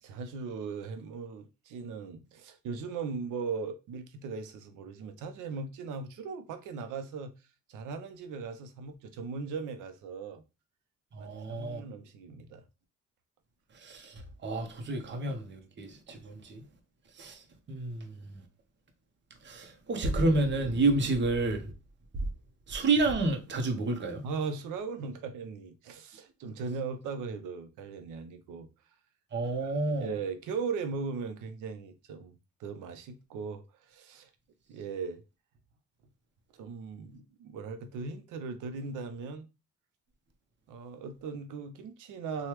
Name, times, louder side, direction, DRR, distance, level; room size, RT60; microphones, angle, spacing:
voice 1, 0.0-7.3 7.7-10.4 11.2-12.6 24.2-28.7 29.6-32.3 32.6-34.3 34.7-35.2 36.5-39.5 40.7-42.5, right 5 dB, 85° right, 0.6 m, -38 dB
voice 2, 11.1-11.8 13.8-14.1 14.4-16.6 17.2-17.4 17.7-18.1 19.4-21.6 22.7-24.3 29.3-30.1, right 2 dB, 40° right, 0.8 m, -29 dB
3.1 x 2.3 x 3.0 m
cardioid pair, 90°, 30 cm